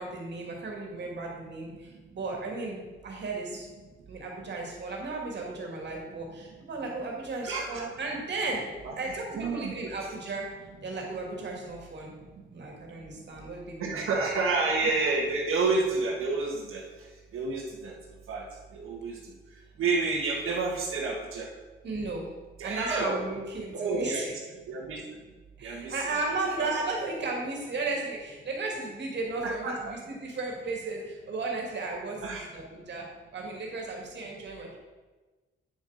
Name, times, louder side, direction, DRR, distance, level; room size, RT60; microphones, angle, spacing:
voice 1, 0.0-3.7 4.1-8.6 9.0-10.5 10.8-12.2 12.5-14.3 21.8-22.3 22.6-24.3 25.6-34.8, right 3 dB, 55° right, 0 dB, 2.5 m, -35 dB
voice 2, 7.4-7.9 8.8-8.9 9.3-9.9 13.8-16.8 17.3-17.9 18.3-18.4 18.7-19.2 19.8-21.5 22.6-23.2 23.7-24.4 24.7-25.0 25.6-26.1 26.6-26.7 27.0-27.1 29.4-30.0 32.2-32.5, right 3 dB, 80° right, -3 dB, 1.7 m, -29 dB
9.4 x 6.9 x 5.1 m, 1.2 s
wide cardioid pair, 150°, 21 cm